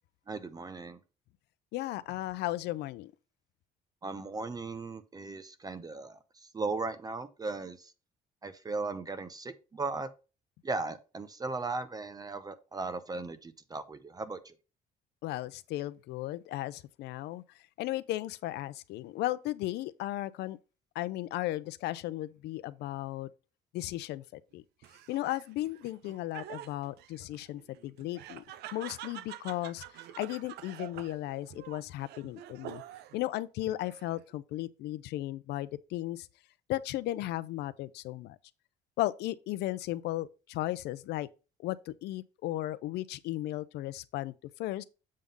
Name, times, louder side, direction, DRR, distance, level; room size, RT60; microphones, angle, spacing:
voice 1, 0.3-1.0 4.0-7.9 8.4-10.1 10.6-14.6, right 3 dB, 20° right, 0.7 m, -37 dB
voice 2, 1.7-3.1 15.2-17.4 17.8-20.6 20.9-23.3 23.7-24.6 25.1-28.4 28.7-29.8 30.2-32.8 33.1-36.3 36.7-38.4 39.0-41.3 41.6-44.8, left 15 dB, 80° left, 0.5 m, -35 dB
Laughter, 24.8-33.2 33.7-34.3, right 12 dB, 80° right, 0.5 m, -47 dB
7.5 x 3.6 x 5.3 m
cardioid pair, 110°, 17 cm